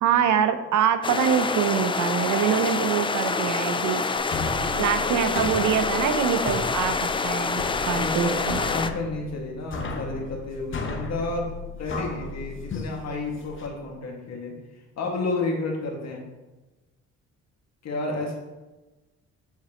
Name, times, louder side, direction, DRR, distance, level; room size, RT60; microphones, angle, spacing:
voice 1, 0.0-4.0 4.8-8.6, right 8 dB, 75° right, 10 dB, 0.6 m, -24 dB
sound 1, 1.0-8.9, left 4 dB, 20° left, 0.3 m, -27 dB
sound 2, 4.2-13.7, left 3 dB, 40° left, 1.0 m, -35 dB
voice 2, 4.7-5.4 7.9-14.5 15.0-16.2 17.8-18.3, left 2 dB, 60° left, 0 dB, 1.8 m, -31 dB
7.4 x 5.8 x 2.9 m, 1.1 s
cardioid pair, 90°, 30 cm